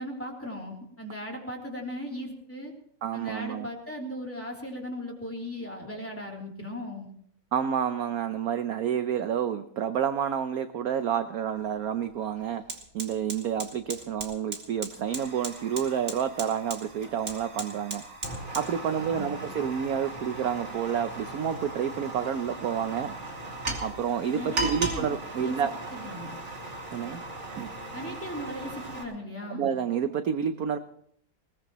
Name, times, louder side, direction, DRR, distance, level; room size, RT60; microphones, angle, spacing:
voice 1, 0.0-2.7 3.1-7.1 18.9-19.5 24.3-25.0 25.4-25.5 25.9-26.3 27.9-29.7, equal, 5° left, -1 dB, 3.2 m, -37 dB
voice 2, 3.0-3.7 7.5-12.6 12.9-18.0 18.5-23.1 23.8-25.7 26.9-27.2 27.6-27.7 29.5-30.8, right 8 dB, 65° right, 9 dB, 0.9 m, -29 dB
Fire, 11.6-11.7 12.0-29.0, right 2 dB, 35° right, 2.4 m, -37 dB
21.0 x 19.0 x 3.0 m, 0.66 s
omnidirectional pair, 2.2 m